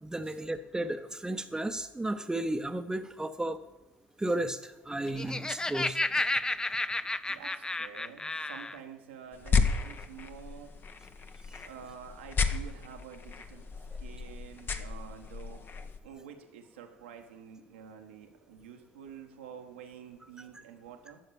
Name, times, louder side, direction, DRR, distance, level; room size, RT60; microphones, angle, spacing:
voice 1, 0.0-3.6 4.2-6.2 11.5-11.7, right 1 dB, 10° right, 8 dB, 0.9 m, -34 dB
Laughter, 4.9-8.8, left 2 dB, 10° left, 0.5 m, -32 dB
voice 2, 7.3-10.7 11.6-13.6 14.0-15.6 16.0-21.2, right 8 dB, 85° right, 3 dB, 1.5 m, -48 dB
sound 1, 9.3-16.0, left 5 dB, 35° left, 1.0 m, -33 dB
12.0 x 6.5 x 7.1 m, 0.97 s
hypercardioid pair, 65°, 6 cm